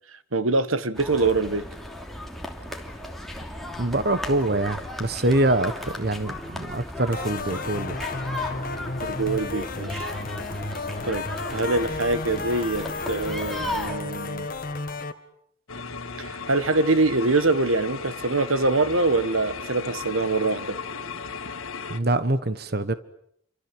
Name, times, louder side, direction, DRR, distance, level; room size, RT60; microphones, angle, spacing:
voice 1, 0.0-1.7 9.0-10.1 11.0-14.5 16.2-20.8, right 3 dB, 85° right, 1.5 m, -24 dB
sound 1, 0.9-14.0, left 1 dB, ahead, 3.0 m, -36 dB
voice 2, 3.8-8.0 21.9-22.9, right 1 dB, 50° right, 1.3 m, -24 dB
sound 2, 7.1-15.1, left 3 dB, 45° left, 1.8 m, -32 dB
sound 3, 15.7-22.0, left 4 dB, 90° left, 1.9 m, -36 dB
29.5 x 25.5 x 7.9 m
head